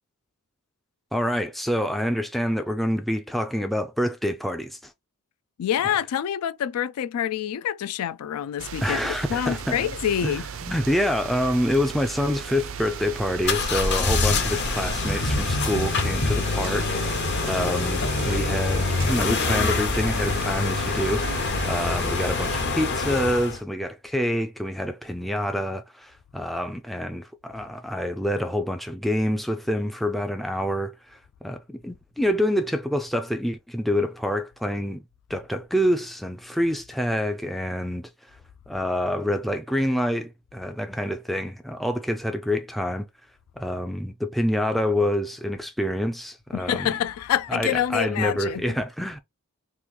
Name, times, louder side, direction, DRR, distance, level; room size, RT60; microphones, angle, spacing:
voice 1, 1.1-4.9 5.8-5.9 8.8-9.8 10.2-17.0 17.4-35.0 35.3-38.1 38.7-43.1 43.6-46.9 47.5-49.2, equal, ahead, 0.3 m, -27 dB
voice 2, 5.6-10.4 46.5-48.8, left 10 dB, 85° left, 0.3 m, -27 dB
sound 1, 8.6-22.7, right 7 dB, 65° right, 0.4 m, -36 dB
sound 2, 13.4-23.6, left 3 dB, 50° left, 0.8 m, -25 dB
3.0 x 2.4 x 3.6 m
head